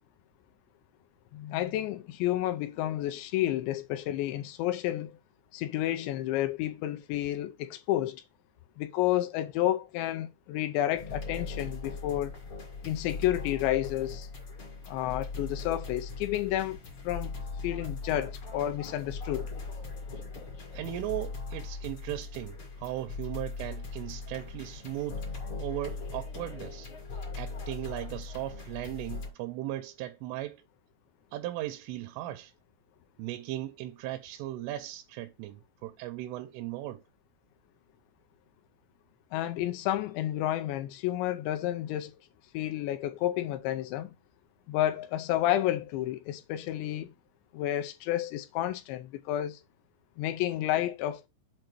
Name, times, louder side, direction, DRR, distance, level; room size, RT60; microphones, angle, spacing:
voice 1, 1.3-5.2 5.5-8.2 8.8-12.4 12.8-14.3 14.9-16.8 17.0-17.3 17.6-19.5 39.3-42.2 42.5-44.1 44.7-47.1 47.5-49.6 50.2-51.3, left 13 dB, 80° left, 2.6 m, -30 dB
sound 1, 10.9-29.3, left 4 dB, 50° left, 1.5 m, -40 dB
voice 2, 20.7-26.9 27.4-30.6 31.3-32.5 33.2-37.0, right 14 dB, 80° right, 3.1 m, -37 dB
7.7 x 2.7 x 6.0 m
omnidirectional pair, 5.8 m